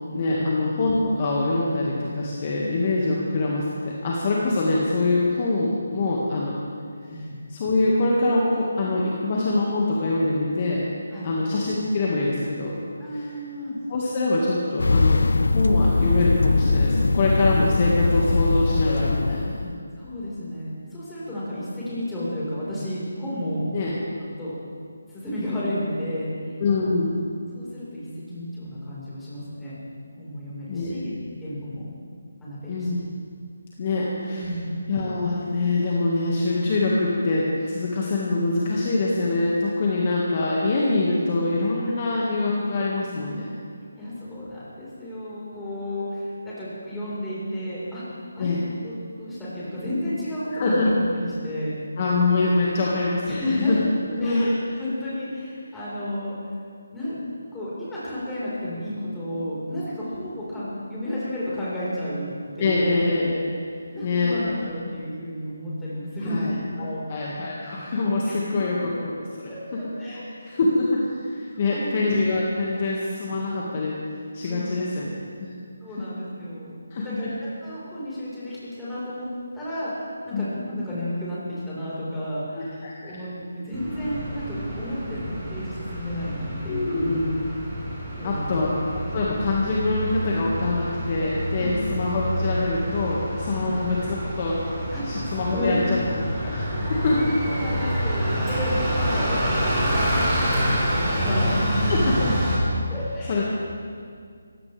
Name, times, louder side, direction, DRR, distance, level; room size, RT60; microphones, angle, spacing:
voice 1, 0.1-6.6 7.5-10.8 11.2-12.8 13.1-13.3 13.9-15.2 15.5-19.7 23.7-23.9 26.6-27.2 30.7-31.0 32.7-33.1 33.8-34.4 34.9-43.6 48.4-48.6 50.5-50.9 52.0-53.8 54.2-54.5 62.6-63.4 64.0-64.4 66.3-66.5 66.8-69.8 70.5-74.0 74.3-75.5 76.9-77.3 80.3-80.5 82.6-83.2 86.7-87.3 88.2-88.7 89.1-94.6 95.1-96.0 96.4-97.3 101.8-102.3 102.6-102.7 103.3-103.4, left 2 dB, 35° left, -4 dB, 1.9 m, -24 dB
voice 2, 13.0-13.8 19.9-23.6 24.4-24.5 25.1-26.6 27.5-29.8 30.2-31.1 31.4-31.8 32.4-32.9 34.3-34.7 41.8-41.9 43.9-48.0 48.3-48.6 48.8-51.7 53.2-53.9 54.2-56.3 56.9-57.2 57.5-63.1 63.9-66.5 66.8-67.1 68.2-68.6 69.4-70.6 71.7-71.9 74.4-74.8 75.8-77.3 77.6-79.3 79.5-81.4 81.6-82.8 83.0-83.3 83.6-87.2 88.2-88.5 91.6-91.8 93.5-93.7 94.9-95.2 95.5-95.8 97.5-101.9 102.9-103.5, left 1 dB, 5° left, -10 dB, 4.7 m, -32 dB
sound 1, 14.8-19.7, left 3 dB, 75° left, 0.4 m, -21 dB
Bus, 83.7-102.6, equal, 10° right, 4.9 m, -27 dB
20.5 x 16.0 x 3.5 m, 2.2 s
figure-of-eight pair, 165°, 0 cm